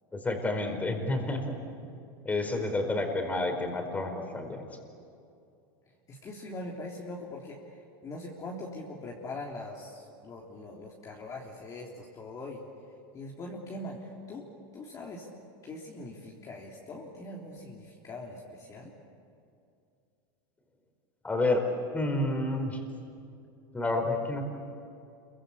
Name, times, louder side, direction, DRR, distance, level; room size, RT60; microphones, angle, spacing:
voice 1, 0.1-1.5 1.8-1.9 2.2-4.6 21.2-21.6 21.9-22.8 23.7-24.4, left 2 dB, 15° left, 4 dB, 4.7 m, -29 dB
voice 2, 6.1-12.6 13.1-14.5 14.7-15.3 15.6-18.9, left 2 dB, 30° left, -3 dB, 3.4 m, -42 dB
27.5 x 23.5 x 8.6 m, 2.5 s
supercardioid pair, 125°, 11 cm